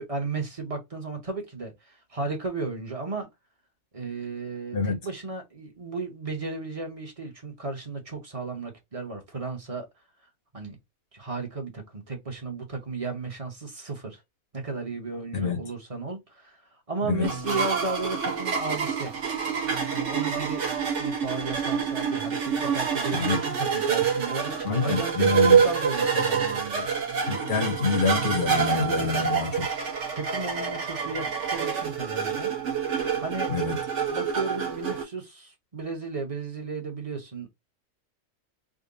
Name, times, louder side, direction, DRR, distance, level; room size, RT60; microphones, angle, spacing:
voice 1, 0.0-3.3 3.9-9.9 10.5-10.8 11.1-14.2 14.5-19.1 19.9-20.6 21.0-26.9 28.5-28.6 30.1-32.6 33.2-33.5 34.1-37.5, right 3 dB, 30° right, 0.9 m, -34 dB
voice 2, 15.3-15.6 17.1-17.3 23.1-23.4 24.7-25.6 27.3-29.7 33.5-33.7, left 4 dB, 50° left, 0.9 m, -26 dB
sound 1, 17.2-35.0, right 6 dB, 60° right, 1.4 m, -27 dB
3.7 x 2.2 x 3.8 m
omnidirectional pair, 1.5 m